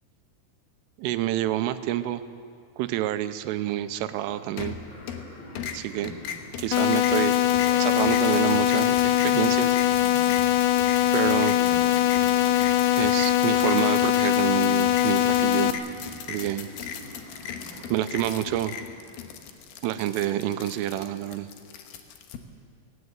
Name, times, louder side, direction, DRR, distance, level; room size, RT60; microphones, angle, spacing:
voice 1, 1.0-2.2 2.8-4.8 5.7-6.1 6.6-7.3 7.8-9.8 11.1-11.6 13.0-15.7 16.3-16.7 17.9-18.8 19.8-21.5, right 13 dB, 85° right, 11 dB, 3.4 m, -28 dB
sound 1, 4.2-19.5, left 1 dB, 50° left, 6.1 m, -46 dB
sound 2, 4.6-5.3 5.6-22.4, left 8 dB, 70° left, 2.6 m, -38 dB
sound 3, 6.7-15.7, left 13 dB, 85° left, 2.2 m, -22 dB
19.5 x 19.0 x 8.1 m, 2.2 s
omnidirectional pair, 5.7 m